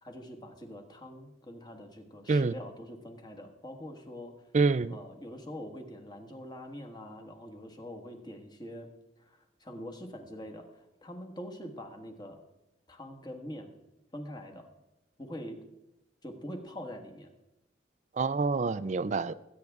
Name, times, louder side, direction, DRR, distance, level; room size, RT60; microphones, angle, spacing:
voice 1, 0.0-4.5 4.9-8.9 9.2-12.4 12.9-13.7 14.1-14.7 15.2-15.7 16.2-17.3, equal, 25° left, 1.5 m, -44 dB
voice 2, 4.5-5.0 18.1-19.3, right 4 dB, 40° right, 0.4 m, -27 dB
21.0 x 9.4 x 3.6 m
head